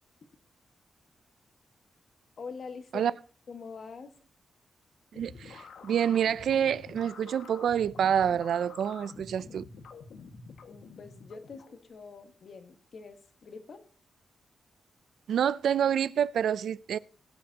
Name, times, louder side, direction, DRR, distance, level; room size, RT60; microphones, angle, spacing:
voice 1, 2.4-3.2 3.5-4.1 10.7-13.8, left 5 dB, 45° left, 1.6 m, -44 dB
sound 1, 5.1-11.9, left 4 dB, 85° left, 1.7 m, -48 dB
voice 2, 5.1-9.7 15.3-17.0, right 8 dB, 80° right, 0.4 m, -27 dB
19.5 x 8.8 x 2.9 m
wide cardioid pair, 165°, 0 cm